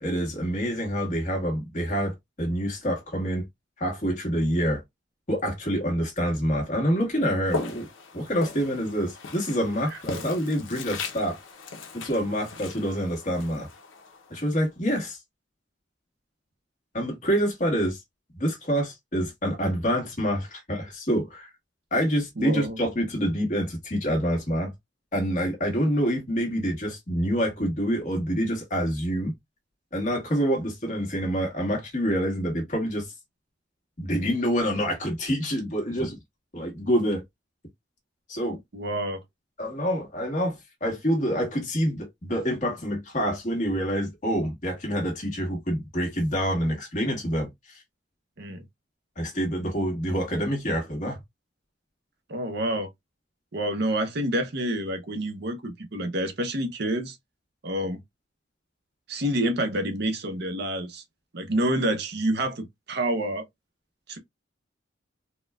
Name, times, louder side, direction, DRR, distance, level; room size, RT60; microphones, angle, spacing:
voice 1, 0.0-3.4 3.8-4.8 5.3-7.9 8.1-11.4 11.9-13.7 14.3-15.2 16.9-18.0 18.3-21.5 21.9-24.7 25.1-29.3 29.9-33.1 34.0-36.2 36.5-37.2 38.3-38.6 39.6-47.8 49.2-51.2, equal, 40° left, 1.4 m, -27 dB
Walk footsteps, 7.4-14.6, left 4 dB, 85° left, 0.7 m, -38 dB
voice 2, 9.9-10.3 22.4-22.8 38.7-39.2 48.4-48.6 52.3-52.9 53.5-57.2 57.6-58.0 59.1-61.0 61.3-63.5 64.1-64.2, right 1 dB, 60° right, 0.7 m, -28 dB
4.2 x 2.2 x 2.2 m
head